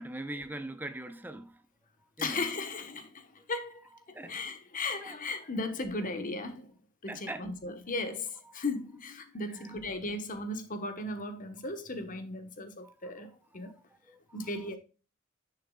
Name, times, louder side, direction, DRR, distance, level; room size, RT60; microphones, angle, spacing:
voice 1, 0.0-1.6 2.2-2.4 4.1-4.3 5.0-5.1 7.1-7.5 9.5-9.8 12.8-12.9 14.1-14.2, right 1 dB, 10° right, 0.7 m, -41 dB
voice 2, 2.2-3.8 4.1-6.7 7.0-13.7 14.3-14.8, left 2 dB, 40° left, 1.2 m, -36 dB
10.0 x 6.7 x 2.3 m
head